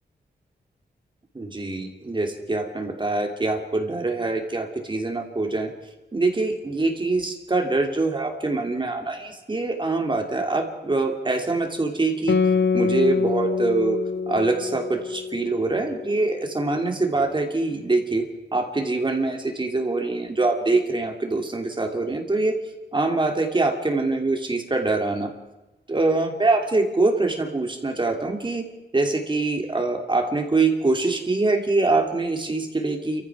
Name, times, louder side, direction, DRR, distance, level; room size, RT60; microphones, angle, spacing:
voice 1, 1.3-5.7 6.1-12.4 12.7-14.0 14.3-18.3 18.5-22.6 22.9-25.3 25.9-28.6 28.9-33.2, right 3 dB, 30° right, 4 dB, 2.7 m, -24 dB
Guitar, 12.3-17.2, left 5 dB, 85° left, 0.8 m, -26 dB
30.0 x 14.5 x 6.1 m, 1.1 s
wide cardioid pair, 145°, 17 cm